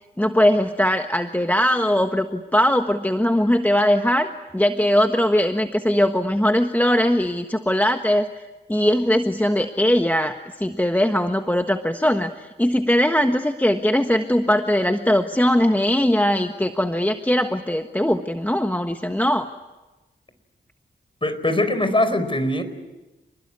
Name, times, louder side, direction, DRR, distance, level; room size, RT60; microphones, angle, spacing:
voice 1, 0.2-8.3 8.7-19.5, equal, 10° left, 6 dB, 1.4 m, -20 dB
voice 2, 21.2-22.6, left 1 dB, 25° left, 11 dB, 4.5 m, -21 dB
28.5 x 21.0 x 9.8 m, 1.1 s
wide cardioid pair, 65°, 20 cm